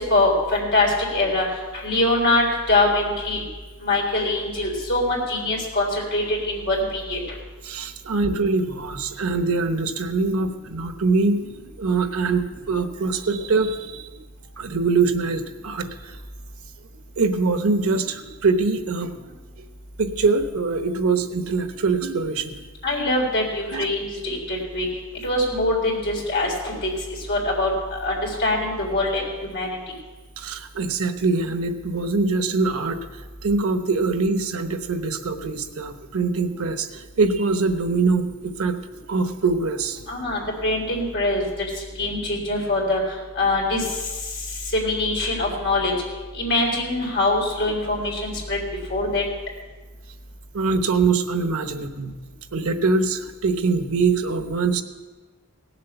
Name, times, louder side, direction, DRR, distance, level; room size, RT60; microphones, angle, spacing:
voice 1, 0.0-1.4 1.8-3.4 3.8-7.2 22.8-24.9 25.2-26.9 27.3-29.2 29.5-29.8 40.1-43.0 43.4-43.8 44.7-45.9 46.3-48.6 48.9-49.2, left 2 dB, 50° left, -2 dB, 3.8 m, -23 dB
voice 2, 7.6-11.5 11.8-14.1 14.6-16.2 17.2-19.1 20.0-22.6 23.7-23.9 30.4-33.0 33.4-38.8 39.1-40.1 50.5-52.1 52.5-54.8, right 4 dB, 85° right, 9 dB, 1.0 m, -23 dB
17.5 x 7.6 x 6.8 m, 1.3 s
head